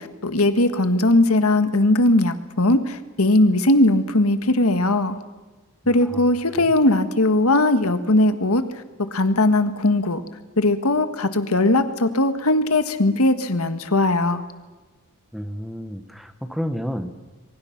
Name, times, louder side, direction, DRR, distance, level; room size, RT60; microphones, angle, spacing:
voice 1, 0.0-5.2 5.9-8.6 9.1-10.2 10.6-14.4, left 2 dB, 75° left, 10 dB, 1.6 m, -19 dB
voice 2, 5.8-6.3 6.5-6.7 15.3-17.2, equal, ahead, 9 dB, 1.2 m, -31 dB
27.5 x 23.5 x 5.9 m, 1.3 s
head